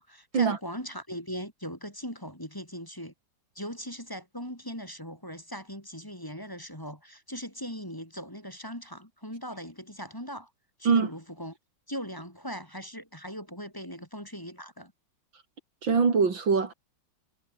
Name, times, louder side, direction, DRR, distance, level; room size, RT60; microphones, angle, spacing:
voice 1, 0.0-3.1 3.5-10.5 10.8-11.6 11.9-14.9, equal, 10° left, 4.7 m, -39 dB
voice 2, 15.8-16.7, right 5 dB, 75° right, 3.6 m, -23 dB
omnidirectional pair, 2.1 m